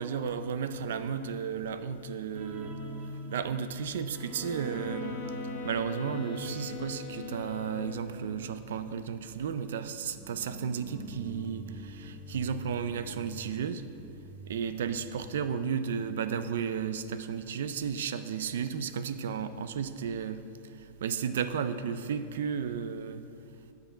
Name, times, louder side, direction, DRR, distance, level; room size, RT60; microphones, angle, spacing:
voice 1, 0.0-2.8 3.3-5.2 5.6-13.8 14.4-20.4 21.0-23.2, right 7 dB, 90° right, 12 dB, 0.4 m, -33 dB
sound 1, 2.3-15.6 15.9-16.1 16.5-16.6, right 1 dB, 25° right, 0.8 m, -44 dB
sound 2, 4.4-8.3, left 8 dB, 55° left, 1.3 m, -43 dB
8.0 x 6.6 x 5.0 m, 2.8 s
supercardioid pair, 160°, 0 cm